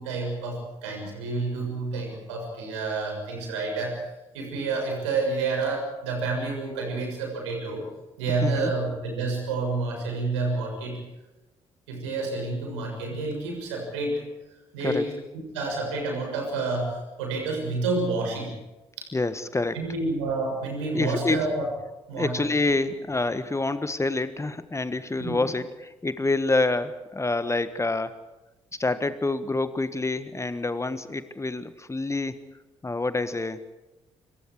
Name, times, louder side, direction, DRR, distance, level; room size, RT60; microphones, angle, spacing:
voice 1, 0.0-4.0 4.3-7.8 8.2-11.0 11.9-14.2 14.7-15.1 15.5-18.5 19.0-19.1 19.7-21.7 22.1-22.3 25.2-25.4, right 3 dB, 75° right, 2 dB, 6.9 m, -29 dB
voice 2, 8.4-8.7 14.8-15.0 19.1-19.8 20.9-21.5 22.2-28.2 28.8-32.4 32.8-33.7, left 2 dB, 20° left, 13 dB, 1.5 m, -27 dB
27.0 x 25.0 x 4.9 m, 1.0 s
figure-of-eight pair, 40°, 15 cm